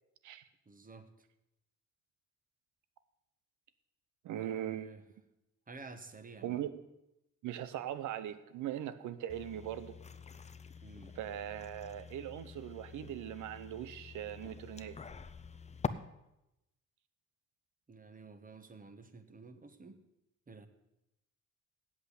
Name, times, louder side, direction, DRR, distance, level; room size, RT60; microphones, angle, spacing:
voice 1, 0.7-1.1 4.3-5.0 5.7-6.6 10.8-11.1 17.9-20.0 20.5-20.7, right 4 dB, 30° right, 9 dB, 1.3 m, -51 dB
voice 2, 4.2-4.9 6.4-6.8 7.4-10.0 11.2-15.0, right 11 dB, 80° right, 13 dB, 0.8 m, -40 dB
sound 1, 9.3-15.9, left 5 dB, 20° left, 0.6 m, -46 dB
8.4 x 8.0 x 8.2 m, 0.88 s
cardioid pair, 90°, 30 cm